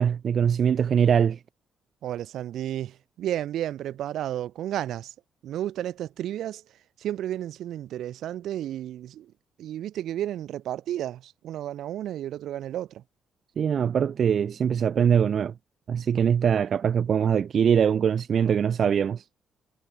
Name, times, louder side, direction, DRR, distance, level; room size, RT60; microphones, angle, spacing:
voice 1, 0.0-1.4 13.6-15.5 15.9-19.2, right 7 dB, 55° right, 0.4 m, -22 dB
voice 2, 2.0-5.1 5.4-6.6 7.0-9.3 9.6-13.0, right 12 dB, 75° right, 1.0 m, -32 dB
cardioid pair, 90°, 0 cm